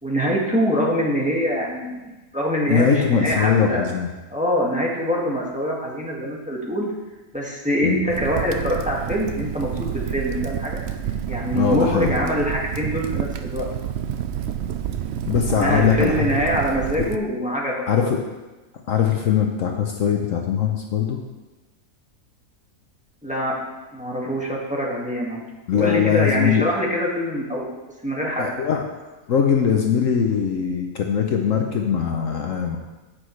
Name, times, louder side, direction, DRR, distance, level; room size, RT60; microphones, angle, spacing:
voice 1, 0.0-3.9 4.3-6.9 7.3-10.8 11.3-13.7 15.6-18.1 23.2-23.6 23.9-25.5 25.7-27.7 28.0-28.5, equal, 5° right, -4 dB, 1.7 m, -24 dB
voice 2, 2.7-4.1 7.8-8.1 11.6-12.1 15.2-16.2 17.0-17.1 17.9-18.2 18.9-21.2 25.7-26.6 28.4-28.8 29.3-32.8, left 7 dB, 65° left, 2 dB, 1.1 m, -21 dB
Crackle, 8.1-17.2, right 9 dB, 65° right, 0.7 m, -29 dB
16.5 x 6.3 x 3.2 m, 1.1 s
omnidirectional pair, 1.6 m